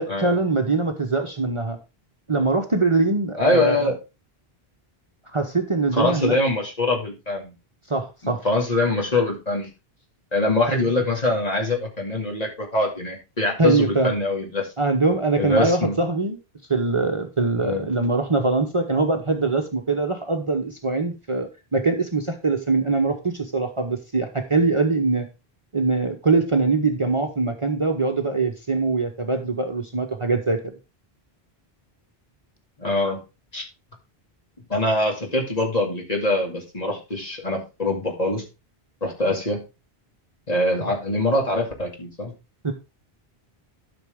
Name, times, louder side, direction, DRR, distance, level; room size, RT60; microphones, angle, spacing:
voice 1, 0.0-1.8 2.3-3.9 5.3-6.3 7.9-8.4 13.6-14.1 14.8-16.4 16.7-25.3 25.7-30.6 42.6-42.7, right 3 dB, 30° right, 3 dB, 1.0 m, -22 dB
voice 2, 3.4-4.0 5.9-7.5 8.2-9.7 10.3-14.7 15.4-15.9 17.6-17.8 32.8-33.2 33.5-33.6 34.7-38.4 39.0-39.6 40.5-42.3, left 2 dB, 40° left, 0 dB, 2.5 m, -23 dB
12.0 x 6.2 x 3.6 m, 0.27 s
omnidirectional pair, 1.0 m